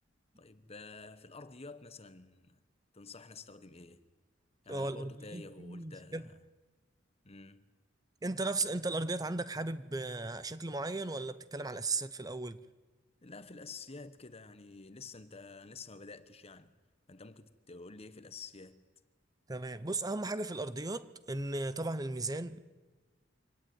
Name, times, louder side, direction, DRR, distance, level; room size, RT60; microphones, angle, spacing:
voice 1, 0.4-2.6 2.9-4.0 4.6-6.4 7.2-7.7 13.2-16.8 17.1-18.9, left 4 dB, 30° left, 1.2 m, -50 dB
voice 2, 4.7-6.2 8.2-12.6 19.5-22.6, right 2 dB, 20° right, 0.8 m, -36 dB
25.0 x 17.5 x 9.6 m
head